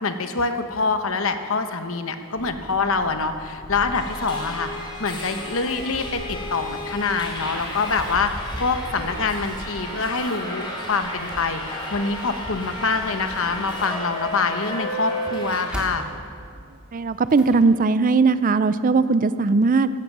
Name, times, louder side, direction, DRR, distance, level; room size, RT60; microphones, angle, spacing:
voice 1, 0.0-16.1, left 4 dB, 65° left, 8 dB, 1.1 m, -25 dB
sound 1, 2.3-8.5, right 1 dB, 55° right, 2.0 m, -44 dB
Subway metro underground, 3.9-15.6, equal, 20° left, 3.2 m, -33 dB
sound 2, 8.8-9.7 10.2-10.3 10.7-12.0 12.4-12.5 12.9-17.6, equal, 5° right, 2.0 m, -41 dB
voice 2, 16.9-19.9, right 4 dB, 40° right, 14 dB, 0.4 m, -19 dB
14.5 x 14.5 x 6.1 m, 2.2 s
head